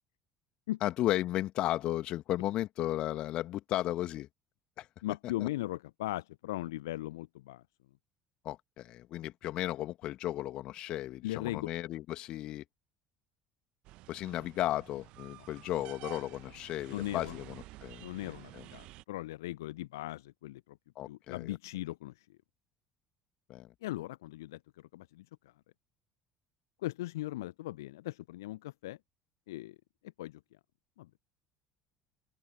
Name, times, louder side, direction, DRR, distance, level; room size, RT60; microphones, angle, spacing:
voice 1, 0.8-4.3 4.8-4.9 5.4-5.5 8.4-12.6 14.1-18.1 18.5-18.6 21.0-21.5 23.5-23.7, left 14 dB, 50° left, 2.2 m, -34 dB
voice 2, 5.0-7.6 11.2-11.7 15.4-15.7 16.9-17.4 18.0-20.8 21.1-22.4 23.8-25.5 26.8-29.0 29.5-29.8 30.2-30.4 31.0-31.1, left 16 dB, 70° left, 0.9 m, -39 dB
sound 1, 13.8-19.0, right 19 dB, 55° right, 1.1 m, -51 dB
figure-of-eight pair, 60°, 2 cm